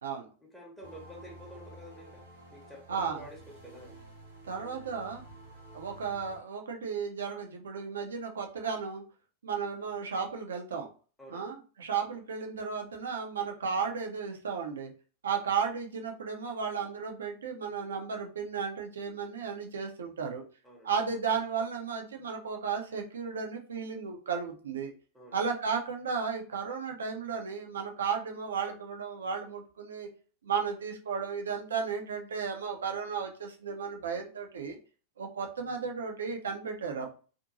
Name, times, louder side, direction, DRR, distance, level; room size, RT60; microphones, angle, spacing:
voice 1, 0.4-3.9 4.7-4.8 11.2-11.5 20.6-20.9 25.1-25.4, equal, 5° left, -3 dB, 0.8 m, -49 dB
sound 1, 0.8-6.4, right 1 dB, 85° right, 1.3 m, -51 dB
voice 2, 2.9-3.2 4.4-5.2 5.7-9.0 9.4-10.9 11.3-14.9 15.2-20.4 20.8-24.9 25.3-30.1 30.4-34.8 35.2-37.1, right 6 dB, 65° right, 3 dB, 0.5 m, -34 dB
2.6 x 2.5 x 2.6 m, 0.39 s
figure-of-eight pair, 90°, 0 cm